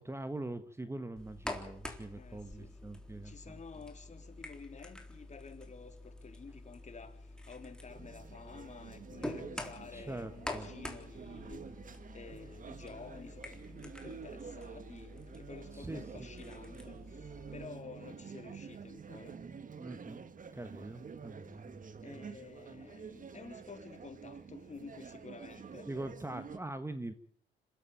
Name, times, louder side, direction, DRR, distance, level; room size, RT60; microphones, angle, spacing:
voice 1, 0.0-3.6 9.9-10.7 15.7-16.0 19.8-20.2 20.5-22.4 23.1-23.3 25.8-27.1, right 2 dB, 15° right, 1.5 m, -43 dB
sound 1, 1.2-17.7, left 1 dB, 5° left, 3.6 m, -47 dB
voice 2, 2.2-2.9 3.2-11.7 12.1-19.4 22.0-25.9, left 5 dB, 35° left, 3.7 m, -51 dB
sound 2, 7.9-26.6, right 6 dB, 40° right, 1.8 m, -49 dB
26.0 x 13.5 x 9.2 m
cardioid pair, 90°, 20 cm